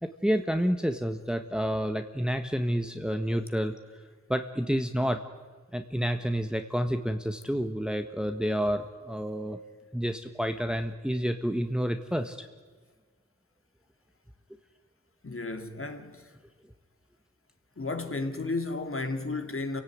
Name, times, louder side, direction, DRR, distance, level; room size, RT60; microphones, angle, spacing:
voice 1, 0.0-3.7 4.3-5.2 5.7-9.6 9.9-12.5, equal, 5° right, 1.5 m, -29 dB
voice 2, 15.2-16.3 17.8-19.8, left 3 dB, 45° left, 2.9 m, -33 dB
29.0 x 17.0 x 9.6 m
wide cardioid pair, 60°, 30 cm